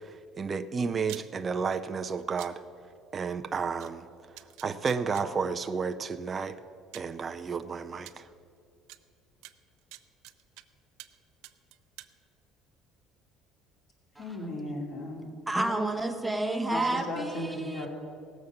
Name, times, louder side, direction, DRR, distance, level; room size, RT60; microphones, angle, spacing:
voice 1, 0.4-2.6 3.1-4.0 4.6-6.6 6.9-8.2, right 5 dB, 25° right, 9 dB, 0.4 m, -31 dB
sound 1, 1.1-1.2 2.4-2.5 3.8-3.9 4.4-5.2 6.3-6.4 6.9-7.1 8.0-8.1 8.9-9.0 9.4-10.6 11.0-11.2 11.4-12.1, right 17 dB, 80° right, 0.5 m, -46 dB
voice 2, 14.2-15.3 16.7-17.9, left 1 dB, 45° left, 0 dB, 2.7 m, -36 dB
voice 3, 15.5-17.9, right 2 dB, 5° right, 4 dB, 0.8 m, -30 dB
17.5 x 7.1 x 6.6 m, 2.4 s
cardioid pair, 145°, 0 cm